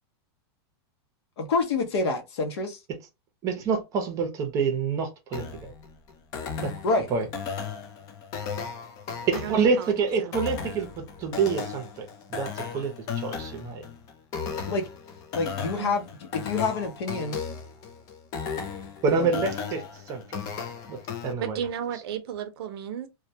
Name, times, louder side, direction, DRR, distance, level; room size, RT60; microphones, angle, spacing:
voice 1, 1.4-2.8 6.8-7.1 14.7-14.9 15.3-17.4 19.1-19.3, left 3 dB, 70° left, 0.8 m, -27 dB
voice 2, 3.4-5.7 6.6-7.3 9.3-13.9 19.0-20.4 20.9-21.6, right 5 dB, 25° right, 0.6 m, -27 dB
sound 1, 5.3-21.3, left 6 dB, 25° left, 0.4 m, -36 dB
voice 3, 9.3-9.9 10.2-10.3 15.8-16.0 21.4-23.1, right 9 dB, 65° right, 0.5 m, -33 dB
2.2 x 2.1 x 2.7 m
supercardioid pair, 155°, 14 cm